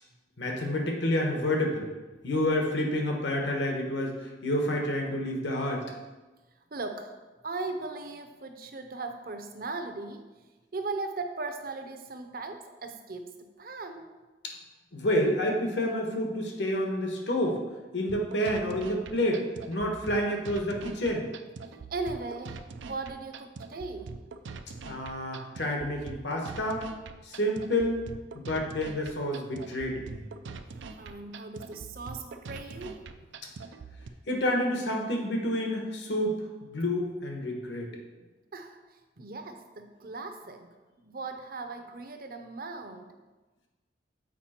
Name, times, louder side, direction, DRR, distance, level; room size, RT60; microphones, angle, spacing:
voice 1, 0.4-1.9 2.2-5.8 14.9-17.6 17.9-21.3 24.8-26.8 27.3-28.0 28.3-30.2 34.3-37.9, left 1 dB, 75° left, 1 dB, 1.3 m, -29 dB
voice 2, 6.7-10.3 10.7-14.1 21.9-24.1 31.0-33.0 38.2-38.8 39.2-43.1, right 3 dB, 50° right, 7 dB, 0.7 m, -38 dB
sound 1, 18.1-34.1, right 4 dB, 90° right, 0.5 m, -43 dB
7.3 x 5.0 x 4.3 m, 1.2 s
head